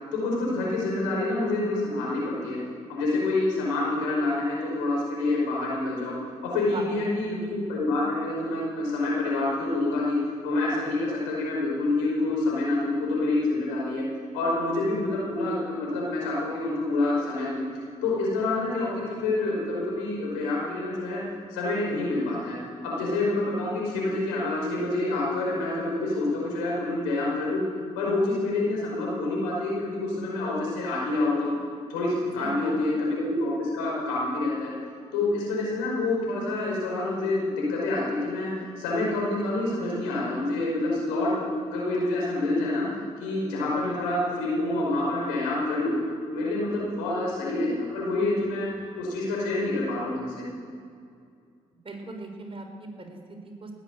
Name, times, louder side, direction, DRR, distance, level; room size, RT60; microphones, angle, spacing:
voice 1, 0.1-2.6 2.9-6.1 6.4-10.2 10.4-14.0 14.3-17.6 18.0-18.9 19.2-21.2 21.5-22.6 22.8-27.6 28.0-31.5 31.9-34.7 35.1-38.5 38.8-42.9 43.2-45.9 46.3-48.7 49.0-50.4, left 2 dB, 90° left, -4 dB, 5.4 m, -27 dB
voice 2, 6.7-7.2 32.4-33.0 51.8-53.7, right 2 dB, 35° right, 3 dB, 4.0 m, -39 dB
18.5 x 8.3 x 8.5 m, 2.3 s
hypercardioid pair, 50°, 16 cm